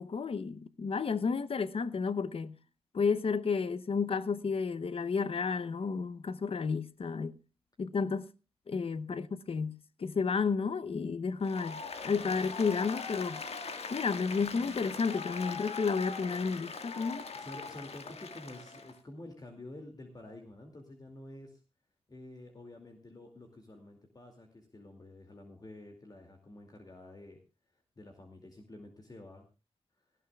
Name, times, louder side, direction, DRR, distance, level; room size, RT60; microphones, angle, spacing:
voice 1, 0.0-2.5 2.9-7.3 7.8-8.3 8.7-9.2 9.5-13.4 13.9-17.3, left 5 dB, 65° left, 0.8 m, -32 dB
Applause, 11.4-18.9, left 4 dB, 80° left, 1.8 m, -41 dB
voice 2, 17.3-21.6 22.1-27.4 27.7-29.5 30.0-30.1, left 1 dB, 40° left, 2.4 m, -49 dB
18.5 x 15.5 x 2.3 m
wide cardioid pair, 85°, 11 cm